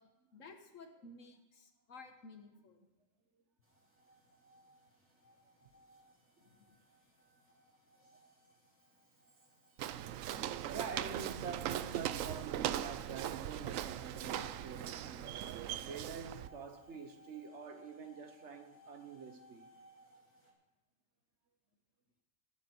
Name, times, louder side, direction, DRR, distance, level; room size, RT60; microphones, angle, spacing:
voice 1, 0.0-2.9 6.4-6.7, left 3 dB, 75° left, 1.7 m, -55 dB
sound 1, 3.6-20.5, equal, 10° right, 2.4 m, -65 dB
voice 2, 5.6-6.0 6.4-6.5 10.7-15.3 15.8-19.7, right 5 dB, 60° right, 1.2 m, -46 dB
Walk footsteps, 9.8-16.5, right 11 dB, 80° right, 0.9 m, -39 dB
20.0 x 7.6 x 4.5 m
omnidirectional pair, 1.4 m